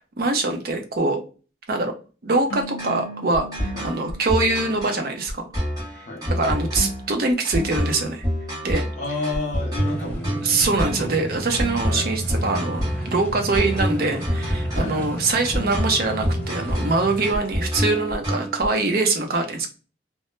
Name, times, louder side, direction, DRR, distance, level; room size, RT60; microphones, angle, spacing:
voice 1, 0.2-1.2 1.7-1.9 2.2-5.5 6.3-8.2 8.6-9.2 10.4-19.7, right 3 dB, 50° right, 4 dB, 0.5 m, -23 dB
sound 1, 2.5-5.8, right 2 dB, 85° left, 0.4 m, -41 dB
sound 2, 2.8-18.7, equal, 20° right, 0.8 m, -27 dB
voice 2, 9.0-10.4 11.9-12.1 14.7-15.1 17.3-17.4, left 2 dB, 40° left, 0 dB, 0.6 m, -31 dB
sound 3, 9.7-17.3, right 1 dB, 10° left, 0.8 m, -33 dB
2.1 x 2.0 x 3.0 m, 0.35 s
head